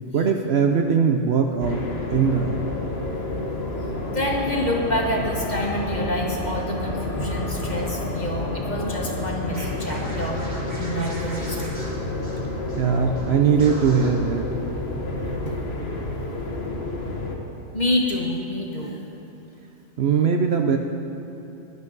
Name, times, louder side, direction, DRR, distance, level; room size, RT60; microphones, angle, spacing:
voice 1, 0.1-2.7 12.8-14.5 20.0-20.8, right 6 dB, 60° right, 4 dB, 0.8 m, -21 dB
sound 1, 1.6-17.4, left 2 dB, 50° left, 1.5 m, -29 dB
voice 2, 4.1-10.4 10.7-11.9 15.5-15.6 16.1-16.2 17.7-19.0, left 1 dB, 35° left, -1 dB, 1.5 m, -27 dB
Scratching (performance technique), 9.5-12.9 13.1-13.3 13.6-14.1, right 1 dB, 80° right, 3.0 m, -40 dB
19.0 x 11.0 x 4.0 m, 2.9 s
omnidirectional pair, 1.4 m